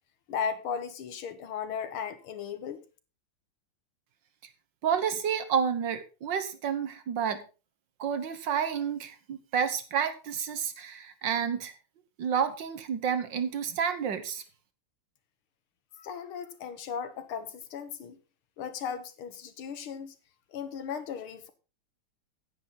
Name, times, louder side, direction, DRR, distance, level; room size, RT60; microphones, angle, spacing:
voice 1, 0.3-2.8 16.0-18.2 18.6-20.2 20.5-21.5, left 7 dB, 80° left, 2.1 m, -36 dB
voice 2, 4.8-7.4 8.0-11.7 12.2-14.4, right 7 dB, 60° right, 1.8 m, -30 dB
10.0 x 9.5 x 4.0 m
omnidirectional pair, 2.4 m